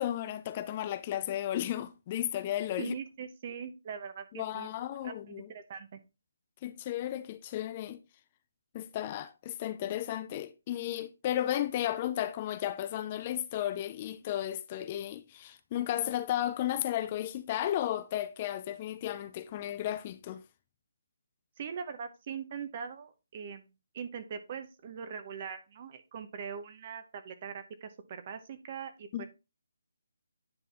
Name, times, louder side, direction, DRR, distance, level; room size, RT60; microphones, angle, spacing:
voice 1, 0.0-2.9 4.3-5.5 6.6-8.0 8.7-20.4 29.1-29.2, left 12 dB, 30° left, 0.4 m, -34 dB
voice 2, 2.8-4.7 5.0-6.0 21.6-23.6 23.9-29.3, right 7 dB, 40° right, 0.9 m, -41 dB
9.8 x 4.1 x 3.5 m
figure-of-eight pair, 150°, 0 cm